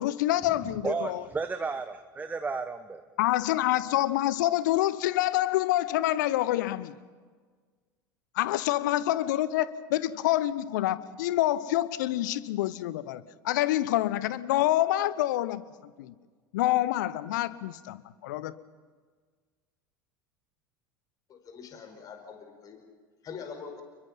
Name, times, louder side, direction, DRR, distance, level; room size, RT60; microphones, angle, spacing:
voice 1, 0.0-1.2 3.2-6.9 8.3-15.6 16.0-16.1 16.5-18.5, left 14 dB, 60° left, 1.0 m, -27 dB
voice 2, 0.8-3.0, right 4 dB, 15° right, 1.1 m, -33 dB
voice 3, 21.3-22.8 23.2-23.8, left 6 dB, 35° left, 5.2 m, -43 dB
29.5 x 22.5 x 5.9 m
figure-of-eight pair, 75°, 11 cm